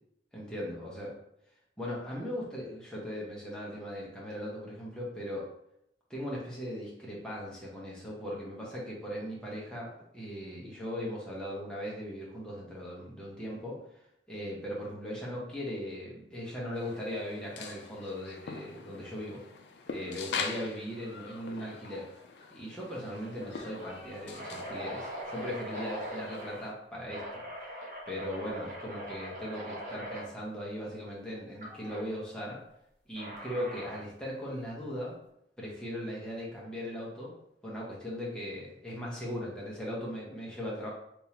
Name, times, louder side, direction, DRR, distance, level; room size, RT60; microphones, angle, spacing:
voice 1, 0.3-1.2 1.8-5.5 6.1-19.4 19.9-22.1 22.5-27.8 28.1-32.6 33.1-35.2 35.6-37.3 37.6-40.9, equal, 5° left, -6 dB, 0.9 m, -39 dB
sound 1, 16.7-26.7, left 5 dB, 75° left, 0.4 m, -43 dB
sound 2, 22.1-22.4 22.7-22.8 23.4-26.6 27.1-30.3 31.6-32.0 33.2-34.1, equal, 45° right, 0.9 m, -41 dB
3.6 x 3.0 x 2.9 m, 0.76 s
head